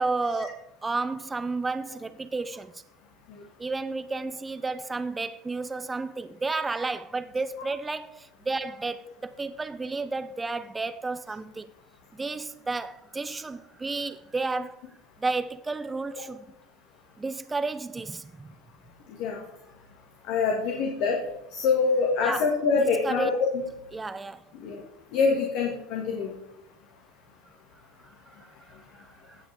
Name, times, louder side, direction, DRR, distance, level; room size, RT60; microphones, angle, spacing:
voice 1, 0.0-2.7 3.6-11.7 12.1-14.8 15.2-16.4 17.2-18.5 22.2-22.4 22.8-23.3 23.9-24.4 29.0-29.4, right 3 dB, 15° right, 0.5 m, -32 dB
voice 2, 20.3-21.2 21.5-23.6 24.5-24.8 25.1-26.3, left 4 dB, 65° left, 1.7 m, -25 dB
16.5 x 6.0 x 3.4 m
hypercardioid pair, 90°, 0 cm